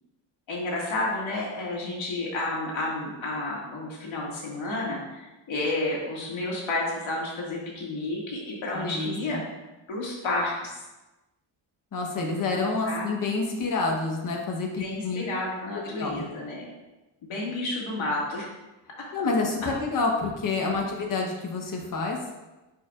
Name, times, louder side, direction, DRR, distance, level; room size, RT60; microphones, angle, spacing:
voice 1, 0.5-9.4 9.9-10.7 12.8-13.1 14.7-16.7 17.2-18.5, left 2 dB, 75° left, -4 dB, 2.1 m, -31 dB
voice 2, 8.7-9.4 11.9-15.2 15.8-16.3 19.1-22.2, left 3 dB, 40° left, 1 dB, 1.1 m, -28 dB
9.7 x 4.6 x 2.4 m, 1.1 s
wide cardioid pair, 180°, 48 cm